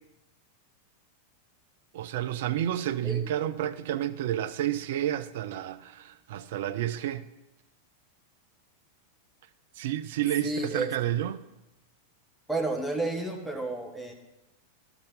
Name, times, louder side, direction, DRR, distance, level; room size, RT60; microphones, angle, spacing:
voice 1, 1.9-7.3 9.8-11.4, right 12 dB, 55° right, 0.5 m, -30 dB
voice 2, 10.4-10.9 12.5-14.1, right 2 dB, ahead, 1.4 m, -31 dB
12.0 x 6.0 x 5.4 m
figure-of-eight pair, 90°, 0 cm